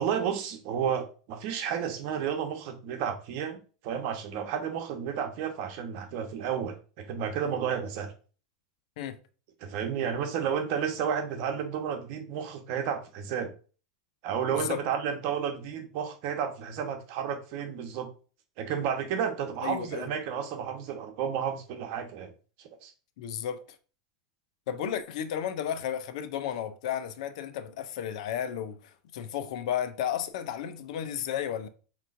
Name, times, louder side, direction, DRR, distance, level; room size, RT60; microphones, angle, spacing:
voice 1, 0.0-3.6 3.8-8.1 9.6-13.5 14.2-18.1 18.6-22.3 22.8-22.9, right 8 dB, 55° right, 1.0 m, -31 dB
voice 2, 14.5-14.8 19.6-20.1 23.2-23.6 24.7-28.8 29.1-31.7, left 9 dB, 70° left, 0.6 m, -33 dB
5.5 x 3.0 x 2.5 m
hypercardioid pair, 115°, 4 cm